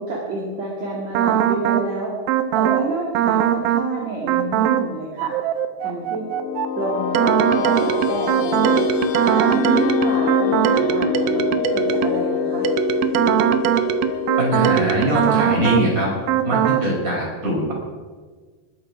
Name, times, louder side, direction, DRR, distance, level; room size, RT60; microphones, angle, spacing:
voice 1, 0.0-2.1 2.5-5.4 5.8-6.3 6.8-8.8 9.3-12.7, right 3 dB, 50° right, -3 dB, 3.5 m, -28 dB
sound 1, 1.2-1.9 2.3-2.9 3.2-3.9 4.3-4.9 5.2-12.2 12.7-15.9 16.3-16.9, right 10 dB, 85° right, 2.7 m, -20 dB
sound 2, 6.0-16.9, left 6 dB, 85° left, 3.0 m, -25 dB
voice 2, 14.4-16.1 16.4-17.7, right 1 dB, 20° right, -2 dB, 5.5 m, -22 dB
21.0 x 11.0 x 5.0 m, 1.4 s
omnidirectional pair, 4.3 m